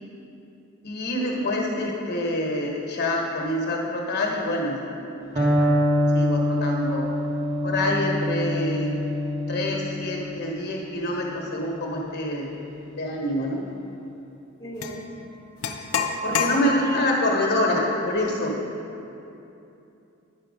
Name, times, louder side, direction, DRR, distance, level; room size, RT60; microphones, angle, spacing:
voice 1, 0.8-5.7 6.1-7.1 7.6-8.9 9.5-12.5 13.0-13.6 16.2-18.6, left 1 dB, 50° left, -1 dB, 1.2 m, -26 dB
Electric guitar, 5.4-13.2, left 1 dB, 30° right, 1.2 m, -26 dB
voice 2, 14.6-15.1 16.2-17.1, left 2 dB, 15° left, -5 dB, 0.9 m, -34 dB
sound 1, 14.8-15.0 15.6-17.1, left 4 dB, 80° left, 0.5 m, -27 dB
10.0 x 4.4 x 5.2 m, 2.8 s
head